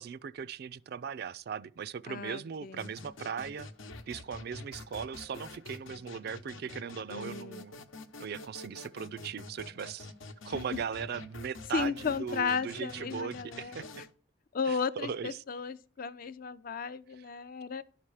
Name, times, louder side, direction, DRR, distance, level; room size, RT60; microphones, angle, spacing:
voice 1, 0.0-3.7 4.1-7.8 8.2-10.1 10.4-14.0 14.7-15.3 17.2-17.3, right 7 dB, 55° right, 0.3 m, -38 dB
voice 2, 2.1-2.8 7.1-7.6 10.5-10.8 11.7-13.9 14.5-17.8, left 5 dB, 45° left, 0.4 m, -35 dB
sound 1, 2.8-14.1, left 2 dB, 80° left, 0.9 m, -47 dB
11.0 x 5.7 x 4.8 m
head